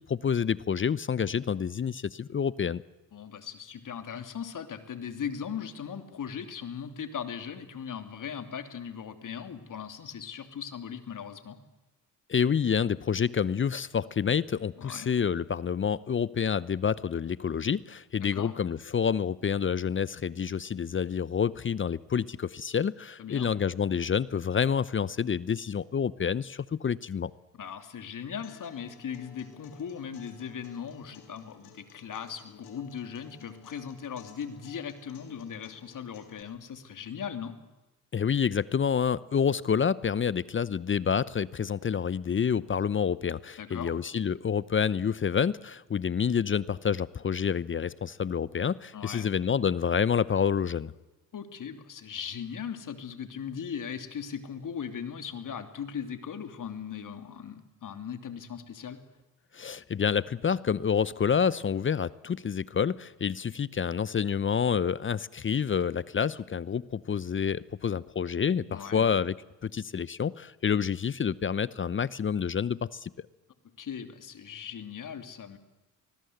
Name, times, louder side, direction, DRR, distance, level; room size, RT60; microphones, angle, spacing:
voice 1, 0.0-2.8 12.3-27.3 38.1-50.9 59.5-69.4 69.6-73.1, left 7 dB, 30° left, 19 dB, 0.8 m, -28 dB
voice 2, 3.1-11.6 14.8-15.1 18.2-18.5 23.2-23.5 27.5-37.5 43.6-43.9 48.9-49.3 51.3-59.0 68.7-69.1 73.8-75.6, left 7 dB, 50° left, 8 dB, 3.0 m, -38 dB
Acoustic guitar, 28.4-36.4, left 6 dB, 70° left, 4.5 m, -55 dB
25.0 x 20.5 x 8.1 m, 1.0 s
supercardioid pair, 65°, 39 cm